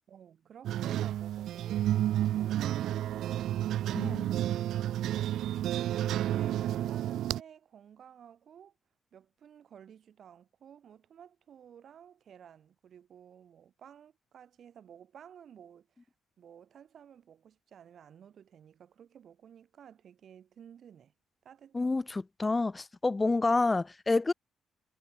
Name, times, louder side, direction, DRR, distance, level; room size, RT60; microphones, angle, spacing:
voice 1, 0.1-4.5 5.7-8.7 9.1-16.1 16.4-21.1 21.4-21.9, right 8 dB, 60° right, 3.4 m, -54 dB
sound 1, 0.6-7.4, right 12 dB, 80° right, 0.5 m, -31 dB
voice 2, 3.9-4.3 21.7-24.3, left 3 dB, 20° left, 0.5 m, -28 dB
cardioid pair, 90°, 0 cm